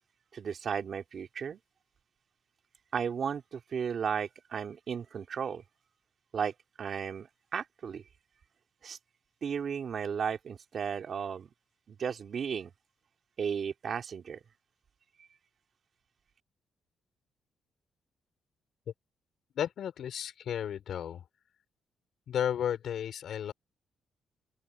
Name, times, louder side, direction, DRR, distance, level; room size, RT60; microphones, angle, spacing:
voice 1, 0.3-1.6 2.9-5.6 6.3-8.1 8.8-9.0 9.4-11.5 11.9-12.7 13.4-14.4 15.2-15.3, right 7 dB, 55° right, 3.0 m, -34 dB
voice 2, 19.5-21.2 22.3-23.5, left 9 dB, 70° left, 5.9 m, -33 dB
cardioid pair, 95°, 0 cm